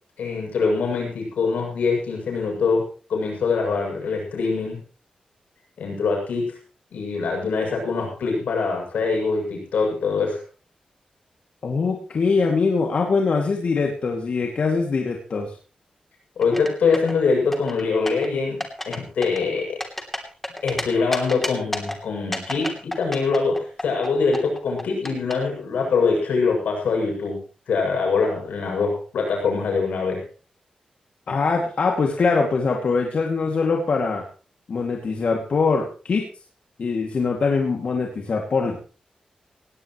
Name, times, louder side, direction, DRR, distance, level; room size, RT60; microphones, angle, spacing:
voice 1, 0.2-4.8 5.8-6.6 6.9-10.4 16.4-18.6 18.9-19.8 20.6-27.4 27.7-30.2, left 4 dB, 90° left, 0 dB, 7.5 m, -23 dB
voice 2, 11.6-15.5 31.3-34.2 34.7-36.3 36.8-38.8, left 4 dB, 60° left, 1 dB, 2.5 m, -22 dB
sound 1, 16.4-17.2 17.5-18.3 18.6-19.0 19.2-20.8 21.1-22.0 22.3-24.1 24.3-25.3, left 1 dB, 10° left, 3.1 m, -29 dB
18.0 x 17.0 x 3.2 m, 0.38 s
cardioid pair, 85°, 2 cm